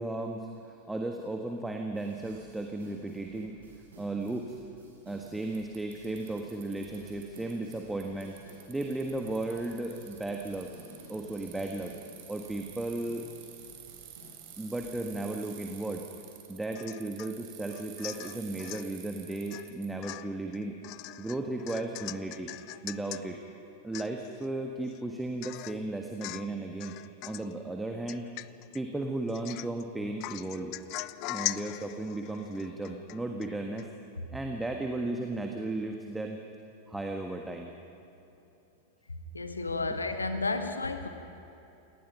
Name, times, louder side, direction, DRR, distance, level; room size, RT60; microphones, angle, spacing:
voice 1, 0.0-3.6 4.0-4.6 5.0-8.4 8.7-10.7 11.1-11.9 12.3-13.2 14.6-16.0 16.5-20.8 21.2-22.5 22.8-23.4 23.8-27.0 27.2-28.3 28.7-30.7 31.3-33.9 34.3-36.4 36.9-37.7 39.7-39.9, right 2 dB, 5° right, 2 dB, 1.5 m, -35 dB
sound 1, 1.9-14.9, right 1 dB, 65° right, 6.9 m, -56 dB
Bicycle, 4.3-4.4 5.3-5.4 5.5-7.7 8.0-19.9, right 11 dB, 45° right, 3.8 m, -50 dB
Domestic sounds home sounds / Chink clink / Drip, 16.8-17.3 17.7-18.9 19.5-19.7 20.0-23.2 23.6-23.7 23.9-24.5 24.9-25.0 25.4-25.8 26.2-26.5 26.8-27.5 28.1-28.8 29.3-29.8 30.2-33.5 33.8-33.9, left 19 dB, 40° left, 0.5 m, -40 dB
voice 2, 39.3-41.1, left 3 dB, 80° left, 8 dB, 1.6 m, -32 dB
28.5 x 19.0 x 5.8 m, 2.9 s
figure-of-eight pair, 90°, 0 cm